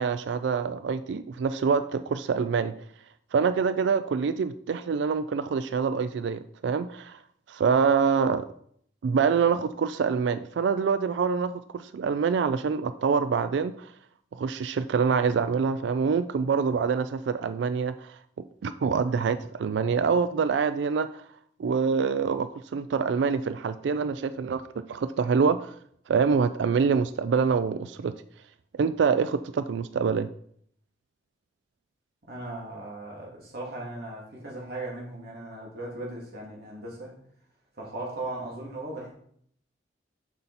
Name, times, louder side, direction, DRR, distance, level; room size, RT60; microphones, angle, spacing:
voice 1, 0.0-2.7 3.3-7.2 7.5-8.5 9.0-13.9 14.3-21.2 21.6-25.7 26.1-28.1 28.7-30.3, right 5 dB, 80° right, 0.3 m, -26 dB
voice 2, 32.3-37.1 37.7-39.1, right 2 dB, 60° right, 2.4 m, -37 dB
7.7 x 5.6 x 4.1 m
head